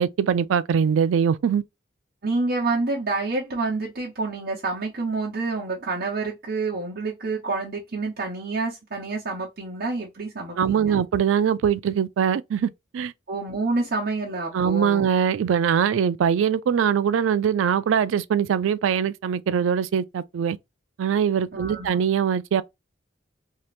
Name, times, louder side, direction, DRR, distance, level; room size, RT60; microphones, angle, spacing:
voice 1, 0.0-1.6 10.6-13.1 14.5-20.6 21.0-22.6, right 7 dB, 90° right, 0.3 m, -22 dB
voice 2, 2.2-11.0 13.3-15.1 21.5-21.9, right 3 dB, 55° right, 0.8 m, -28 dB
2.8 x 2.5 x 3.1 m
head